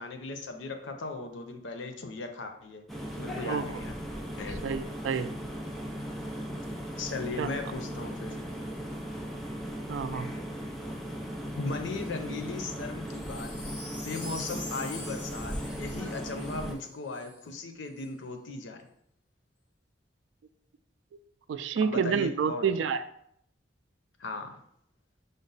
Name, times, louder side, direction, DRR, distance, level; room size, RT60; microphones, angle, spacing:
voice 1, 0.0-2.8 3.1-3.9 4.4-4.7 7.0-8.4 11.6-13.5 13.9-18.8 21.8-22.7 24.2-24.6, left 3 dB, 90° left, 6 dB, 0.6 m, -37 dB
sound 1, 2.9-16.7, equal, ahead, 0.4 m, -37 dB
voice 2, 4.6-5.3 7.4-7.5 9.9-10.3 21.5-23.0, right 6 dB, 80° right, 11 dB, 0.3 m, -28 dB
Wind chime, 13.0-17.4 18.0-18.1, left 2 dB, 70° left, 1.0 m, -44 dB
5.0 x 2.0 x 3.9 m, 0.70 s
head